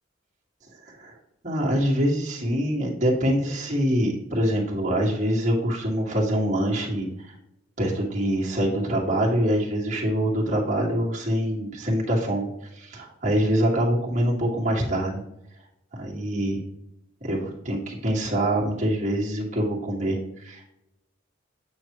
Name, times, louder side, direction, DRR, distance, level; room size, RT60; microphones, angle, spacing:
voice 1, 1.4-7.3 7.8-15.2 15.9-16.6 17.2-20.6, equal, 35° right, -4 dB, 2.2 m, -25 dB
9.2 x 6.0 x 3.2 m, 0.81 s
head